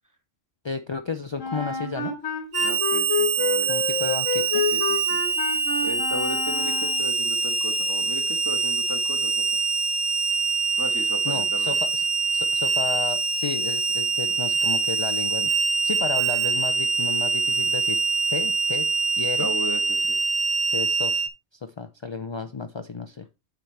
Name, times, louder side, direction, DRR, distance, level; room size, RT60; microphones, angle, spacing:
voice 1, 0.6-2.2 3.7-4.7 11.2-12.0 12.3-15.5 15.8-18.0 18.3-18.9 19.2-19.5 20.7-21.2 21.6-23.3, left 5 dB, 45° left, 8 dB, 0.3 m, -32 dB
Wind instrument woodwind instrument, 1.4-7.1, left 5 dB, 85° left, 1.9 m, -28 dB
Harmonica, 2.5-21.3, right 4 dB, 85° right, 1.7 m, -24 dB
voice 2, 2.6-3.7 4.7-5.0 5.8-9.4 10.8-11.7 19.4-20.2, equal, 15° right, 5 dB, 1.2 m, -35 dB
9.0 x 5.9 x 3.3 m, 0.25 s
omnidirectional pair, 1.2 m